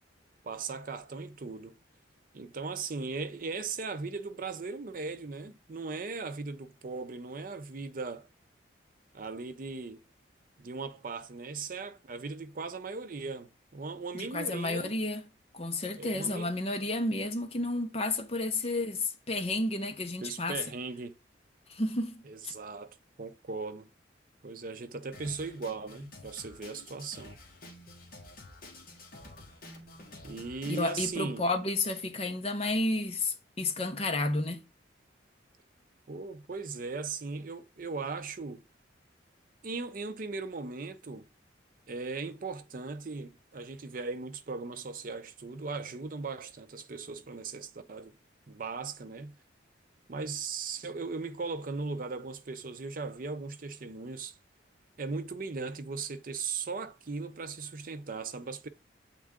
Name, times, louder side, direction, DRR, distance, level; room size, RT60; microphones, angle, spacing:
voice 1, 0.4-1.7 2.3-8.3 9.1-10.0 10.6-14.9 16.0-16.5 20.2-21.1 22.3-23.9 24.4-27.4 30.2-31.4 36.1-38.6 39.6-41.3 41.9-48.2 48.5-49.3 50.1-54.4 55.0-58.7, right 4 dB, 45° right, 0.5 m, -38 dB
voice 2, 14.1-15.2 15.5-20.6 21.7-22.5 30.7-34.6, left 2 dB, 30° left, 0.8 m, -31 dB
Drum kit, 25.1-31.1, left 2 dB, 45° left, 1.3 m, -50 dB
7.6 x 3.6 x 3.6 m
head